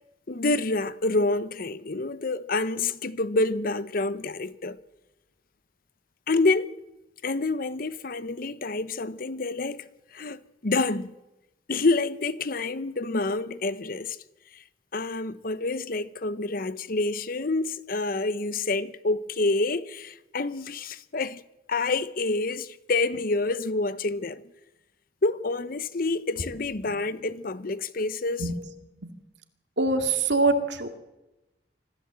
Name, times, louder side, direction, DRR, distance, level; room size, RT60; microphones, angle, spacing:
voice 1, 0.3-4.8 6.3-6.7 7.2-9.9 10.1-11.1 11.7-14.2 14.5-14.6 14.9-21.4 21.7-24.4 25.2-28.5, left 3 dB, 55° left, 0.8 m, -27 dB
voice 2, 29.8-30.9, right 3 dB, 85° right, 2.3 m, -24 dB
25.5 x 15.0 x 7.6 m
head